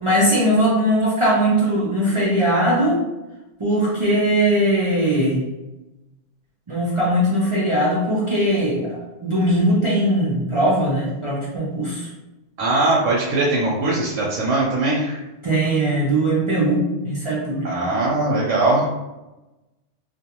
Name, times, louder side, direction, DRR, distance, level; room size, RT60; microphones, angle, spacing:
voice 1, 0.0-3.0 3.6-5.4 6.7-9.0 9.2-12.1 15.4-17.8, right 1 dB, 50° right, -7 dB, 0.3 m, -20 dB
voice 2, 12.6-15.2 17.6-19.0, right 2 dB, 85° right, -4 dB, 1.0 m, -20 dB
2.3 x 2.2 x 2.8 m, 1.0 s
omnidirectional pair, 1.2 m